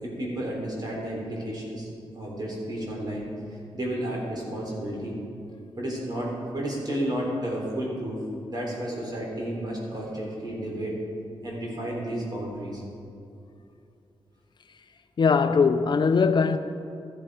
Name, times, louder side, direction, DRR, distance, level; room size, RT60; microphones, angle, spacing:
voice 1, 0.0-1.9 2.1-3.2 3.7-5.1 5.8-8.2 8.5-10.9 11.4-12.8, right 1 dB, 45° right, 4.0 m, -32 dB
voice 2, 15.2-16.6, left 5 dB, 50° left, 0.5 m, -20 dB
14.0 x 12.0 x 5.0 m
wide cardioid pair, 120°, 10 cm